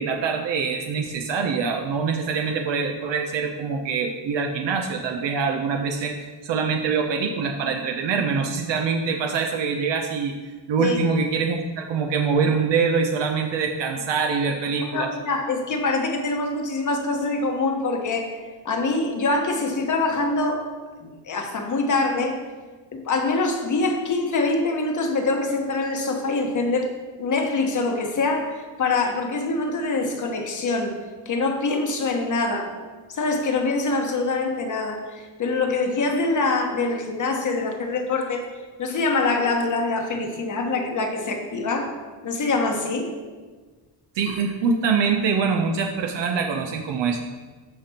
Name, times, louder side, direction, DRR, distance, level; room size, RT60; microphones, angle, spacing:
voice 1, 0.0-10.3 10.7-15.1 44.1-47.2, right 5 dB, 75° right, 3 dB, 0.8 m, -24 dB
voice 2, 14.7-18.4 18.6-20.7 21.0-22.4 22.9-26.9 27.2-31.0 31.2-32.8 33.1-38.4 38.8-42.0 42.2-43.1, left 3 dB, 45° left, 3 dB, 1.2 m, -24 dB
13.5 x 5.1 x 2.9 m, 1.4 s
cardioid pair, 120°, 43 cm